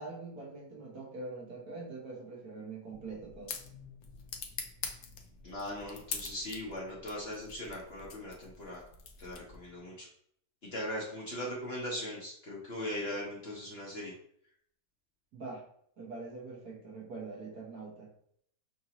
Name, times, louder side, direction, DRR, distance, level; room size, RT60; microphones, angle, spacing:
voice 1, 0.0-3.6 15.3-15.6 16.0-18.1, right 3 dB, 65° right, -2 dB, 1.5 m, -44 dB
sound 1, 2.9-9.8, left 6 dB, 65° left, 0.7 m, -45 dB
voice 2, 5.4-8.8 9.2-10.1 10.7-14.1, left 1 dB, 45° left, -4 dB, 1.0 m, -39 dB
5.8 x 2.7 x 2.9 m, 0.67 s
omnidirectional pair, 1.8 m